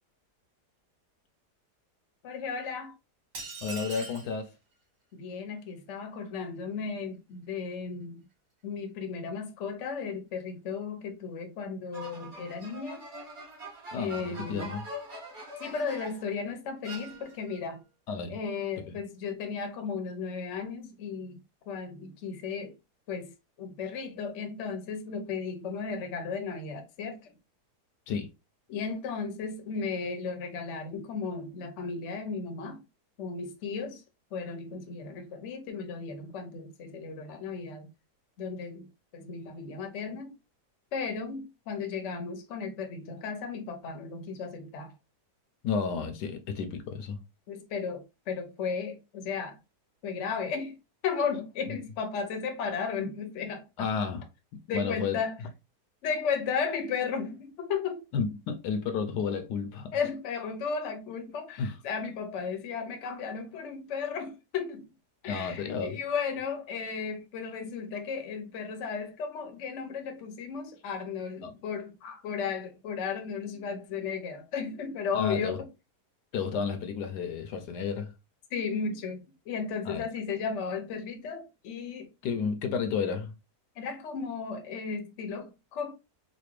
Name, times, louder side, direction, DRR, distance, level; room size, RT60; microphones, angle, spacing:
voice 1, 2.2-2.9 5.1-8.2 8.6-13.1 13.9-14.7 15.6-17.8 18.3-21.4 21.7-22.8 23.1-23.3 23.6-27.3 28.7-32.8 33.2-34.0 34.3-37.9 38.4-40.4 40.9-44.9 47.5-49.6 50.0-50.8 51.0-53.9 54.7-55.4 56.0-58.0 59.9-64.9 65.2-75.6 78.5-82.1 83.8-85.9, left 5 dB, 55° left, 0.9 m, -35 dB
sound 1, 3.3-4.3, right 3 dB, 80° right, 2.0 m, -40 dB
voice 2, 3.6-4.6 13.9-14.9 18.1-18.4 18.9-19.0 28.1-28.3 45.6-47.2 51.7-51.8 53.8-54.3 54.7-55.2 58.1-60.0 61.6-61.8 65.3-66.0 71.4-71.6 75.1-75.6 76.3-78.1 79.8-80.1 82.2-83.4, left 6 dB, 75° left, 1.2 m, -32 dB
sound 2, 11.9-16.3 16.8-17.6, right 1 dB, 40° right, 1.9 m, -43 dB
4.1 x 2.3 x 3.1 m
omnidirectional pair, 1.8 m